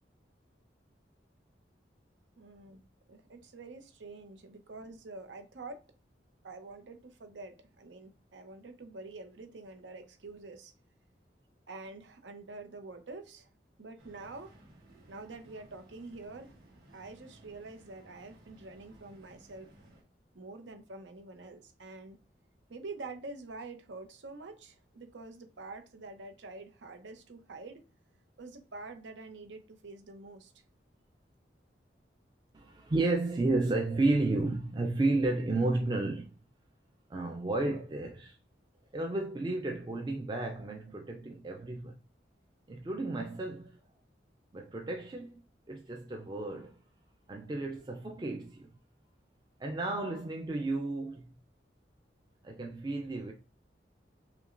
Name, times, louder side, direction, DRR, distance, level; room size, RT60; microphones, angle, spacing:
voice 1, 2.4-2.8 3.1-5.8 6.4-10.7 11.7-13.5 13.8-14.5 15.1-16.5 16.9-19.7 20.3-22.2 22.7-27.8 28.4-30.5, right 3 dB, 85° right, 0.7 m, -46 dB
sound 1, 14.0-20.0, right 1 dB, 55° right, 1.7 m, -58 dB
voice 2, 32.5-36.4 37.1-38.4 38.9-42.0 42.7-43.8 44.5-46.8 47.3-48.7 49.6-51.4 52.4-53.3, right 2 dB, 25° right, 0.4 m, -32 dB
5.8 x 2.2 x 2.5 m
head